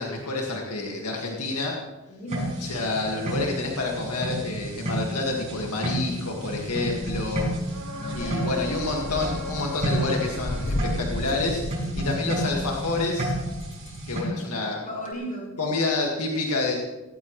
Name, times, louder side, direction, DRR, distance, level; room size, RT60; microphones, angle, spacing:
voice 1, 0.0-1.8 2.6-7.8 8.1-11.6 11.9-13.3 14.1-14.8 15.6-16.7, left 3 dB, 85° left, -1 dB, 2.1 m, -28 dB
voice 2, 2.1-2.6 7.8-8.4 14.8-15.5, equal, 40° left, -4 dB, 6.4 m, -35 dB
sound 1, 2.3-14.2, right 1 dB, 35° right, 5.8 m, -31 dB
sound 2, 7.0-14.2, left 1 dB, 60° left, 0.9 m, -35 dB
sound 3, 7.7-11.4 15.1-15.2, left 1 dB, 85° right, 3.7 m, -39 dB
18.0 x 17.5 x 3.3 m, 1.1 s
head